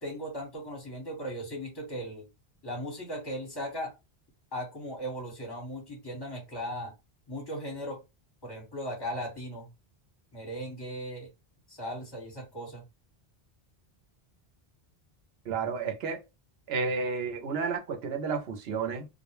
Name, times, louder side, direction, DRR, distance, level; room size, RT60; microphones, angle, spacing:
voice 1, 0.0-2.3 2.6-3.9 4.5-6.9 7.3-8.0 8.4-9.7 10.3-11.3 11.7-12.8, equal, 25° left, 1.1 m, -37 dB
voice 2, 15.5-16.2 16.7-19.1, right 5 dB, 75° right, 0.9 m, -31 dB
2.3 x 2.1 x 3.0 m
omnidirectional pair, 1.1 m